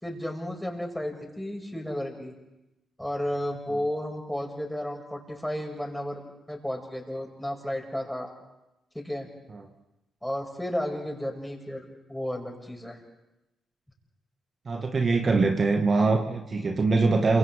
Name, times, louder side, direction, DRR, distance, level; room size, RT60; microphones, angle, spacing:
voice 1, 0.0-2.3 3.0-8.3 8.9-9.3 10.2-13.0, left 1 dB, 5° left, 1 dB, 6.2 m, -33 dB
voice 2, 14.7-17.4, right 3 dB, 50° right, 3 dB, 2.0 m, -23 dB
28.0 x 26.0 x 3.7 m, 0.94 s
hypercardioid pair, 45°, 0 cm